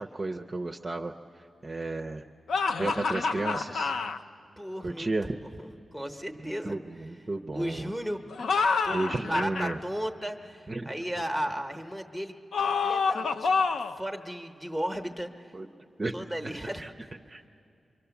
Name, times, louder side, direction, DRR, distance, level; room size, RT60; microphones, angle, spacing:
voice 1, 0.0-2.3 2.8-3.9 4.8-5.4 6.4-7.9 8.9-9.8 10.7-10.9 15.5-15.7 16.0-16.5 16.8-16.9 17.3-17.5, right 2 dB, 25° right, 3 dB, 0.5 m, -33 dB
sound 1, 2.5-4.2 8.3-9.7 12.5-14.0, left 4 dB, 75° left, 0.5 m, -27 dB
voice 2, 4.6-6.8 7.5-8.5 8.8-15.5 16.1-17.1, equal, 5° left, 5 dB, 0.9 m, -35 dB
24.5 x 24.5 x 7.0 m, 2.6 s
wide cardioid pair, 170°, 0 cm